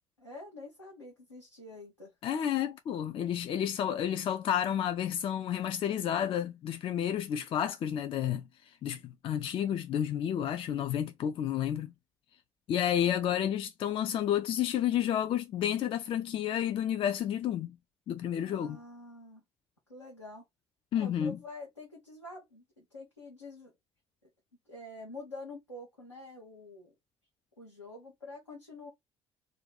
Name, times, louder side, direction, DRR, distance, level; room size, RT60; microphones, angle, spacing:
voice 1, 0.2-2.1 12.9-13.2 18.4-19.4 19.9-20.4 21.0-23.7 24.7-26.9 27.6-28.9, left 2 dB, 90° left, 0.7 m, -47 dB
voice 2, 2.2-8.4 8.8-11.9 12.7-17.8 18.1-18.8 20.9-21.4, left 10 dB, 40° left, 0.3 m, -31 dB
2.6 x 2.2 x 3.9 m
figure-of-eight pair, 50°, 15 cm